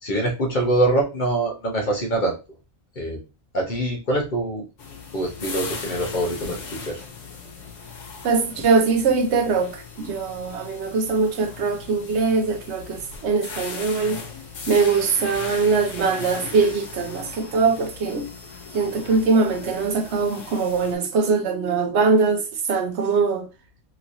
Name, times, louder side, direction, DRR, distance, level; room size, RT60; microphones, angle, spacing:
voice 1, 0.0-2.4 3.0-3.2 3.5-4.7 5.1-7.0, right 1 dB, 45° left, 0.8 m, -24 dB
sound 1, 4.8-21.0, left 5 dB, 85° left, 1.1 m, -38 dB
voice 2, 8.2-14.2 14.7-18.3 18.7-23.5, right 4 dB, 70° right, 0.9 m, -22 dB
3.1 x 2.9 x 2.6 m
omnidirectional pair, 1.2 m